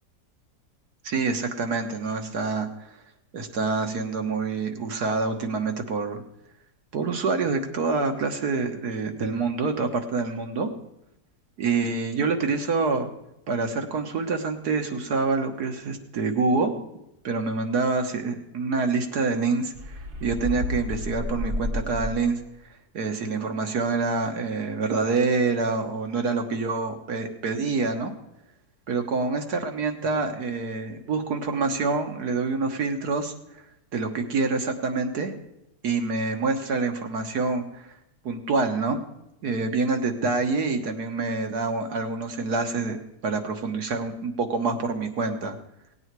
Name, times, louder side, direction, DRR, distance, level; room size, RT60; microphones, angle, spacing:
voice 1, 1.0-2.9 3.3-6.2 6.9-10.7 11.6-13.1 13.5-16.7 17.2-19.9 20.2-22.4 22.9-28.1 28.9-33.3 33.9-35.4 35.8-37.9 38.2-39.0 39.4-45.6, right 4 dB, 75° right, 5 dB, 1.9 m, -26 dB
sound 1, 19.7-22.5, left 1 dB, 40° right, 0.9 m, -31 dB
18.0 x 8.9 x 4.7 m, 0.86 s
omnidirectional pair, 1.7 m